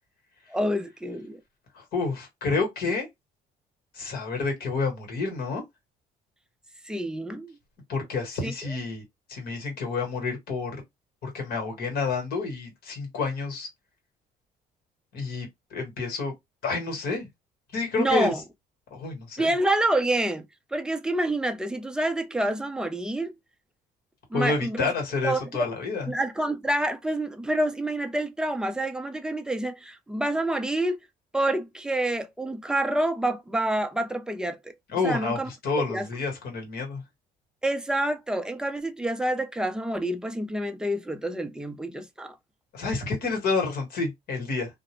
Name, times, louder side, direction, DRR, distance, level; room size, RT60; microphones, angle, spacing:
voice 1, 0.5-1.4 6.8-7.6 8.4-8.5 18.0-18.4 19.4-20.4 20.7-23.3 24.3-24.9 25.2-25.7 26.1-31.0 31.3-34.7 35.0-35.5 35.9-36.1 37.6-42.3, right 1 dB, 5° right, 0.4 m, -27 dB
voice 2, 1.7-3.1 3.9-5.6 7.9-9.0 9.3-10.8 11.2-13.7 15.1-16.3 16.6-17.3 17.7-18.3 18.9-19.5 24.3-26.1 34.9-37.0 42.7-44.8, left 4 dB, 65° left, 1.3 m, -29 dB
2.4 x 2.0 x 3.0 m
cardioid pair, 110°, 17 cm